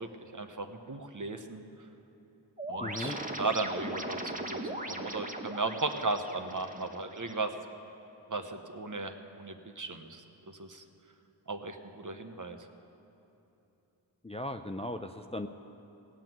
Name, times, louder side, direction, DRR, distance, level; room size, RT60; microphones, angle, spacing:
voice 1, 0.0-1.6 2.7-7.5 8.3-10.8 11.5-12.6, right 3 dB, 45° right, 6 dB, 1.0 m, -36 dB
sound 1, 2.6-7.6, right 1 dB, 20° right, 1.2 m, -39 dB
voice 2, 2.8-3.2 14.2-15.5, left 1 dB, 15° left, 6 dB, 0.5 m, -37 dB
17.5 x 5.9 x 9.1 m, 2.9 s
wide cardioid pair, 40°, 45 cm